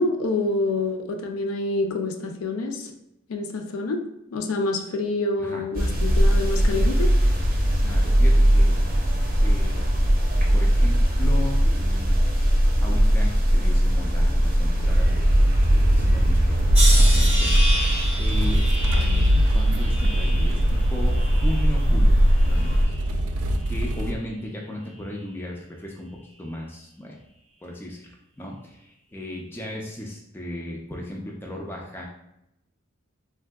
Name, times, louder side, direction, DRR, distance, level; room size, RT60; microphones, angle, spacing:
voice 1, 0.0-2.9 3.3-4.0 4.3-7.1, left 2 dB, 80° left, 4 dB, 0.4 m, -27 dB
sound 1, 5.8-22.8, equal, 40° right, 0.6 m, -20 dB
voice 2, 7.8-8.8 9.4-9.8 10.5-12.1 12.8-15.4 15.7-16.6 16.9-17.5 18.2-18.7 18.9-22.2 22.5-22.9 23.7-27.2 27.6-32.1, left 1 dB, 10° left, -1 dB, 0.3 m, -36 dB
sound 2, 14.8-24.1, equal, 85° right, 0.4 m, -25 dB
sound 3, 16.7-21.9 22.3-23.0 23.8-24.1, right 1 dB, 10° right, 0.7 m, -31 dB
3.5 x 2.6 x 2.2 m, 0.82 s
head